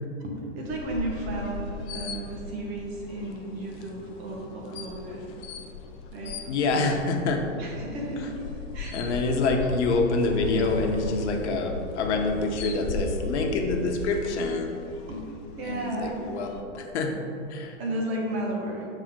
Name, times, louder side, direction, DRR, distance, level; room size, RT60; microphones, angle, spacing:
voice 1, 0.2-5.3 6.1-6.4 7.6-9.0 15.1-15.2 15.6-16.4 17.8-18.9, right 1 dB, 55° right, -1 dB, 1.5 m, -33 dB
sound 1, 0.7-16.6, left 4 dB, 25° left, 0.3 m, -37 dB
voice 2, 6.5-7.4 8.9-14.8 15.6-16.5 16.7-17.1 17.5-17.7, left 3 dB, 60° left, 3 dB, 1.0 m, -26 dB
6.5 x 4.1 x 3.7 m, 2.7 s
hypercardioid pair, 120°, 38 cm